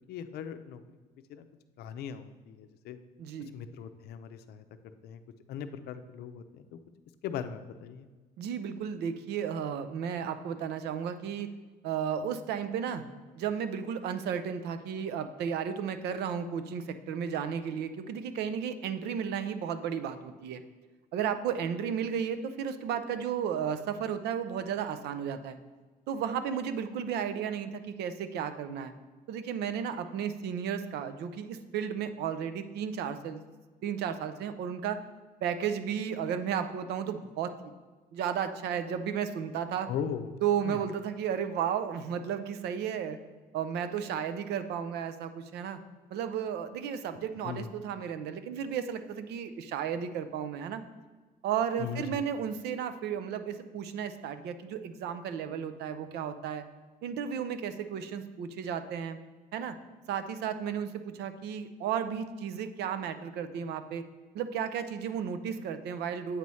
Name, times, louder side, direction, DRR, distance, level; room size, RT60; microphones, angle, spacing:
voice 1, 0.1-0.8 1.3-1.5 1.8-3.0 3.5-4.6 5.0-5.2 5.5-6.8 7.2-8.1 39.9-40.4 40.6-40.8 47.4-47.7 51.8-52.2, left 8 dB, 75° left, 10 dB, 0.5 m, -39 dB
voice 2, 3.2-3.5 8.4-11.5 11.8-13.1 13.4-20.6 21.1-25.6 26.1-28.9 29.3-33.4 33.8-35.0 35.4-37.7 38.1-39.9 40.4-43.2 43.5-45.8 46.1-50.8 51.4-56.6 57.0-59.2 59.5-59.8 60.1-64.1 64.3-66.4, right 8 dB, 75° right, 10 dB, 0.6 m, -33 dB
8.2 x 3.1 x 5.4 m, 1.3 s
cardioid pair, 110°, 17 cm